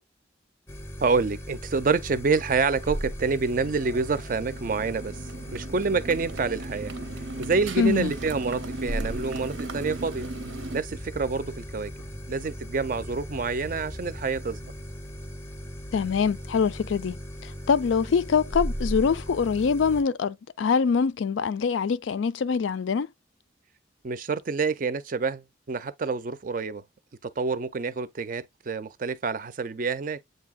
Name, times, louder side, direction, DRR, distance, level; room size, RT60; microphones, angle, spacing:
sound 1, 0.7-20.0, equal, 15° left, 0.5 m, -37 dB
voice 1, 1.0-5.2 5.5-6.9 7.4-10.3 10.7-11.9 12.3-14.7 24.0-26.8 27.2-30.2, right 4 dB, 45° right, 0.5 m, -27 dB
Motorcycle, 3.6-10.8, right 2 dB, 85° right, 0.7 m, -38 dB
voice 2, 7.8-8.1 15.9-23.1, left 5 dB, 85° left, 0.4 m, -24 dB
7.7 x 2.7 x 2.3 m
head